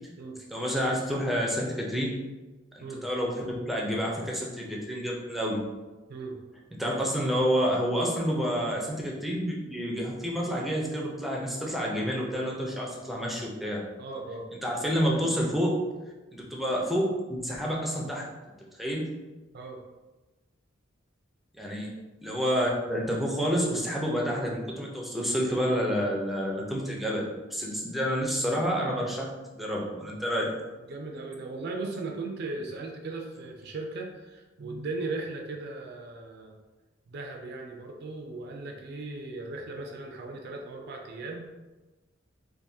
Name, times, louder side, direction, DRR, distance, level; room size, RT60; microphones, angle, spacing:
voice 1, 0.5-2.2 2.7-5.6 6.8-13.8 14.6-15.8 16.3-18.2 18.8-19.1 21.6-21.9 22.2-30.5, equal, ahead, -3 dB, 0.5 m, -29 dB
voice 2, 14.0-14.5 19.5-19.8 30.9-36.6 37.1-41.5, right 3 dB, 55° right, 2 dB, 0.4 m, -37 dB
3.5 x 2.6 x 2.7 m, 1.2 s
head